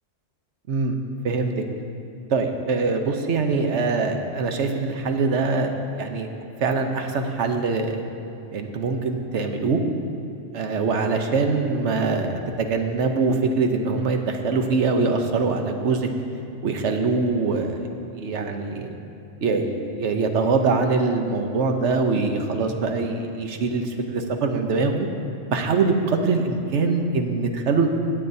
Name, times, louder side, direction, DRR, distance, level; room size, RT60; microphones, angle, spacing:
voice 1, 2.3-6.3 6.6-8.0 8.5-9.8 10.5-16.1 16.6-18.9 19.4-25.1 25.5-27.9, right 4 dB, 70° right, 5 dB, 1.1 m, -23 dB
16.0 x 8.9 x 2.7 m, 2.7 s
omnidirectional pair, 1.3 m